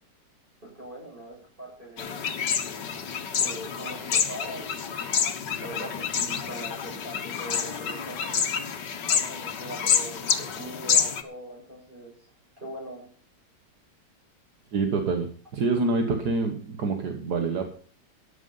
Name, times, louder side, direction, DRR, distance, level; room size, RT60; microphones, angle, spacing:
voice 1, 0.6-2.3 3.3-5.1 5.6-8.5 9.1-12.3 12.6-13.1, right 1 dB, 30° right, -2 dB, 8.3 m, -41 dB
sound 1, 2.0-11.2, left 7 dB, 80° left, 2.0 m, -28 dB
voice 2, 14.7-17.7, right 3 dB, 65° right, 5 dB, 1.9 m, -26 dB
13.5 x 10.5 x 5.6 m, 0.43 s
omnidirectional pair, 1.9 m